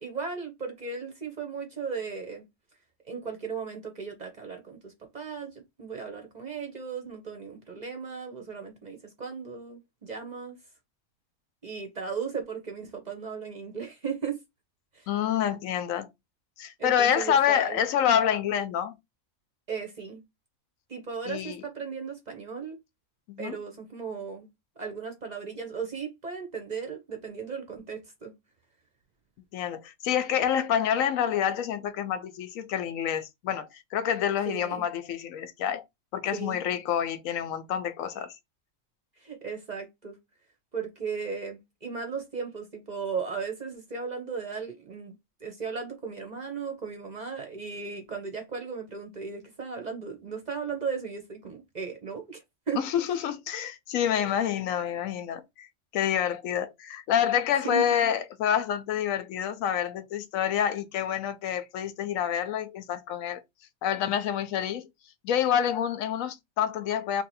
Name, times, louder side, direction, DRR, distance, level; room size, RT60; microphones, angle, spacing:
voice 1, 0.0-2.4 3.1-10.6 11.6-14.4 14.9-15.1 16.8-17.8 19.7-20.2 20.9-22.8 23.4-24.5 24.8-28.3 34.4-34.9 36.3-36.6 39.2-40.2 40.7-52.8 57.6-57.9, right 5 dB, 45° right, 0.7 m, -36 dB
voice 2, 15.1-16.1 16.6-18.9 21.3-21.6 23.3-23.6 29.5-35.8 36.1-38.3 52.8-55.7 55.9-63.4 63.8-64.9 65.2-67.2, left 9 dB, 85° left, 1.0 m, -27 dB
2.9 x 2.6 x 4.1 m
omnidirectional pair, 1.4 m